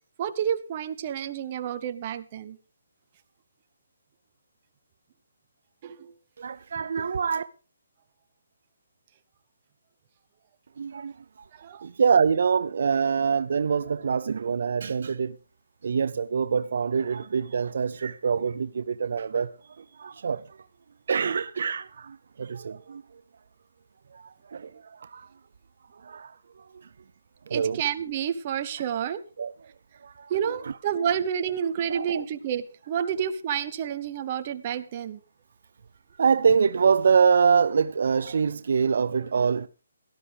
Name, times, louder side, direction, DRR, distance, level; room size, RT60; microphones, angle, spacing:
voice 1, 0.2-2.6 5.8-6.1 11.5-11.9 27.5-29.2 30.3-35.2, right 8 dB, 25° right, 0.9 m, -29 dB
voice 2, 6.4-7.4 10.8-11.1 11.8-15.4 15.8-19.5 19.8-20.4 21.1-23.0 24.1-25.3 25.9-26.3 27.5-27.8 29.4-29.5 30.0-30.7 31.9-32.2 33.0-33.1 36.2-39.7, right 6 dB, 55° right, 0.5 m, -25 dB
17.5 x 11.5 x 3.4 m
hypercardioid pair, 170°, 0 cm